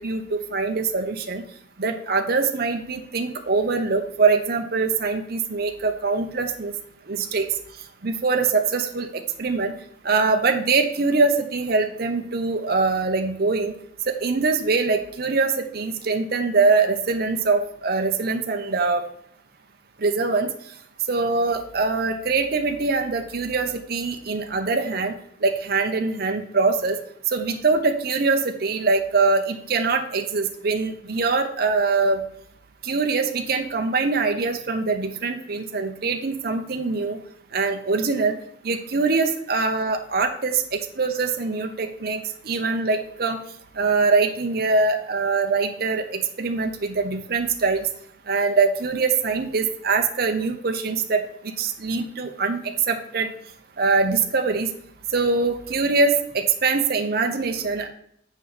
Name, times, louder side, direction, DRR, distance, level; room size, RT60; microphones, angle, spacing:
voice 1, 0.0-1.4 1.8-6.7 7.1-7.5 8.0-9.7 10.0-13.7 14.1-19.0 20.0-20.5 21.1-25.1 25.4-27.0 27.3-32.2 32.8-37.2 37.5-38.4 38.6-43.4 43.8-47.9 48.3-51.2 51.6-53.3 53.8-54.7 55.1-57.9, right 4 dB, 55° right, 4 dB, 0.7 m, -23 dB
7.6 x 6.2 x 4.0 m, 0.65 s
head